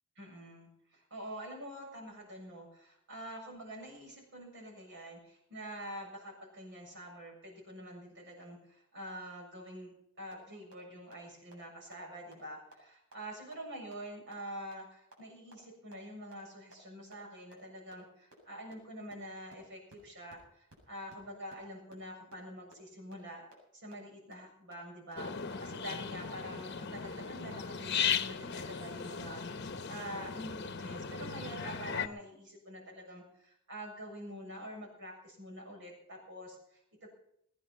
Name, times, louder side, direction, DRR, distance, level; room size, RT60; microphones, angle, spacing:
voice 1, 0.2-23.4 23.7-37.1, equal, 60° right, 1 dB, 7.2 m, -46 dB
chuck-scintilla, 10.3-10.4 10.7-10.8 11.1-11.2 11.5-11.6 11.9-12.0 12.3-12.4 12.7-12.8 13.1-13.2 13.5-13.6 13.9-14.0 14.3-14.4 14.7-14.8 15.1-15.2 15.5-15.6 15.9-16.0 16.3-16.4 16.7-16.8 17.1-17.2 17.5-17.6 17.9-18.0 18.3-18.4 18.7-18.8 19.1-19.2 19.5-19.6 19.9-20.0 20.3-20.4 20.7-20.8 21.1-21.2 21.5-21.6 21.9-22.0 22.3-22.4 22.7-22.8 23.1-23.2 23.5-23.6 23.9-24.0 24.3-24.4 24.7-24.8 25.1-25.2 25.5-25.6 25.9-26.0 26.3-26.4 26.7-26.8 27.1-27.2 27.5-27.6 27.9-28.0 28.3-28.4 28.7-28.8 29.1-29.2 29.5-29.6 29.9-30.0, right 2 dB, 80° right, 7.8 m, -54 dB
sound 1, 25.2-32.1, left 7 dB, 50° left, 1.1 m, -37 dB
22.0 x 10.5 x 5.8 m, 0.71 s
head